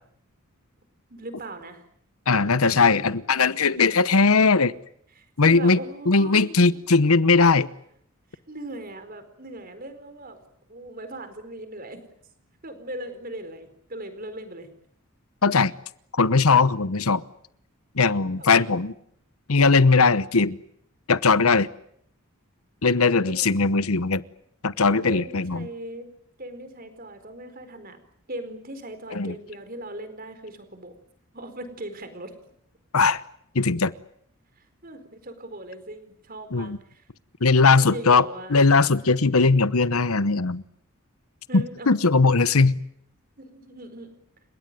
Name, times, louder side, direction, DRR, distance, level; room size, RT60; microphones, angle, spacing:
voice 1, 1.1-1.8 2.9-3.0 5.1-6.8 8.3-10.4 10.7-12.0 12.6-14.7 18.4-18.7 23.1-23.6 25.0-26.1 26.4-28.0 28.3-30.9 31.3-32.3 34.6-37.1 37.8-38.6 41.5-42.0 43.4-44.2, right 1 dB, 40° right, 9 dB, 4.4 m, -39 dB
voice 2, 2.3-4.7 5.4-5.8 6.1-7.7 15.4-15.7 16.1-17.2 17.9-18.9 19.5-20.6 21.1-21.7 22.8-24.2 24.6-25.7 29.1-29.3 32.9-33.2 33.5-33.9 36.5-36.8 37.4-38.2 38.5-40.6 41.5-42.8, left 4 dB, 80° left, 16 dB, 1.0 m, -19 dB
30.0 x 17.5 x 9.2 m, 0.69 s
head